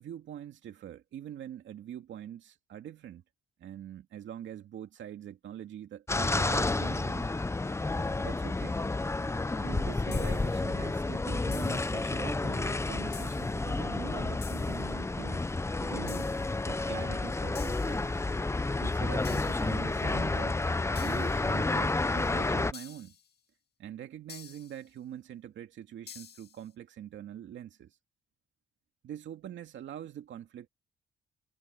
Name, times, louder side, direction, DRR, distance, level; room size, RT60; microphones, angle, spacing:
voice 1, 0.0-3.2 3.6-7.3 8.2-8.8 9.6-15.4 15.8-16.3 16.6-18.3 18.8-20.6 21.0-23.2 23.8-28.0 29.0-30.7, right 10 dB, 70° right, 2.3 m, -44 dB
sound 1, 6.1-22.7, left 3 dB, 15° left, 0.8 m, -30 dB
sound 2, 10.1-10.6 11.5-12.0 13.1-13.6 14.4-14.9 16.1-16.6 17.5-18.1 19.2-19.8 20.9-21.5 22.7-23.3 24.3-24.8 26.1-26.6, left 8 dB, 55° left, 2.3 m, -49 dB
cardioid pair, 90°, 20 cm